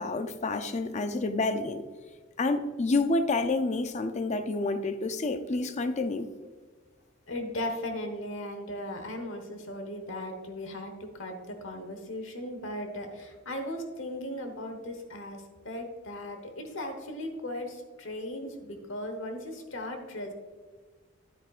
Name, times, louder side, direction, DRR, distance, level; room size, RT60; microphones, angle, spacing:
voice 1, 0.0-1.8 2.4-6.3, left 3 dB, 35° left, 0.5 m, -29 dB
voice 2, 7.3-20.3, left 1 dB, 70° left, 1.2 m, -37 dB
9.8 x 8.7 x 2.5 m
head